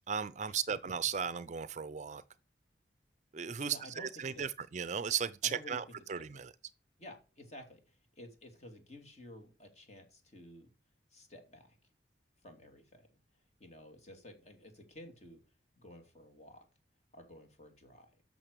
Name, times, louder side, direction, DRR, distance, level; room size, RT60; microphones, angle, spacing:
voice 1, 0.1-2.2 3.3-6.5, right 7 dB, 40° right, 0.4 m, -36 dB
voice 2, 3.6-4.5 5.4-5.8 6.2-6.4 7.0-10.7 11.1-11.8 12.4-13.1 13.6-15.4 15.8-16.6 17.1-18.1, left 1 dB, 40° left, 2.6 m, -52 dB
9.0 x 6.5 x 6.8 m
head